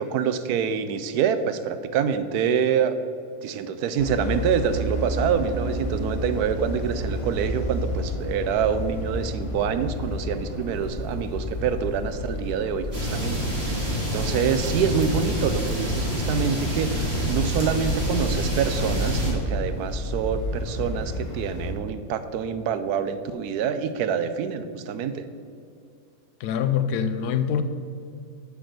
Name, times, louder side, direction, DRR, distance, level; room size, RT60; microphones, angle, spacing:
voice 1, 0.0-3.0 3.4-25.2, right 7 dB, 75° right, 11 dB, 1.0 m, -26 dB
sound 1, 4.0-21.7, left 1 dB, 20° left, 1.2 m, -31 dB
sound 2, 12.9-19.3, equal, 40° right, 2.3 m, -27 dB
voice 2, 26.4-27.6, left 8 dB, 80° left, 10 dB, 1.1 m, -24 dB
8.1 x 6.3 x 6.6 m, 2.5 s
omnidirectional pair, 1.8 m